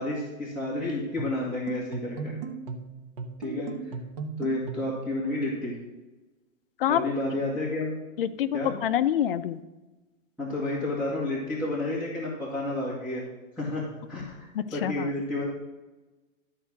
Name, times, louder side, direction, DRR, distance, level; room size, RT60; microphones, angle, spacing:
voice 1, 0.0-2.3 3.4-3.9 4.4-5.7 6.9-7.9 8.5-8.7 10.4-13.2 13.6-14.2 14.7-15.4, left 2 dB, ahead, -9 dB, 1.7 m, -30 dB
sound 1, 1.2-5.0, right 5 dB, 40° right, 1.2 m, -37 dB
voice 2, 6.8-7.1 8.2-9.6 14.5-15.1, left 10 dB, 45° left, 11 dB, 0.5 m, -26 dB
12.0 x 4.5 x 6.3 m, 1.1 s
hypercardioid pair, 165°, 40 cm